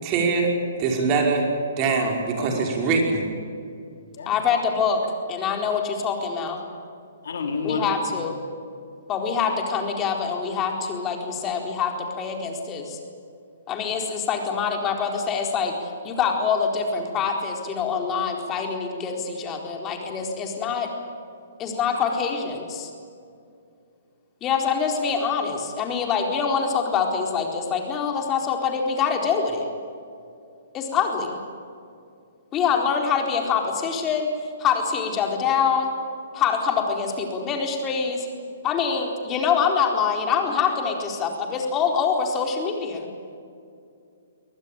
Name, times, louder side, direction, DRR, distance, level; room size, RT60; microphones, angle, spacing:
voice 1, 0.0-0.5 0.8-1.4 1.8-3.3, right 4 dB, 35° right, 1 dB, 5.5 m, -22 dB
voice 2, 4.3-5.0 5.3-6.6 7.6-8.3 9.1-13.0 13.7-20.9 21.6-22.9 24.4-29.7 30.7-31.4 32.5-34.3 34.6-35.9 36.3-38.3 38.6-43.1, left 6 dB, 25° left, 2 dB, 4.2 m, -25 dB
voice 3, 7.2-8.2, left 4 dB, 70° left, 3 dB, 4.1 m, -30 dB
23.5 x 19.0 x 9.1 m, 2.4 s
hypercardioid pair, 130°, 0 cm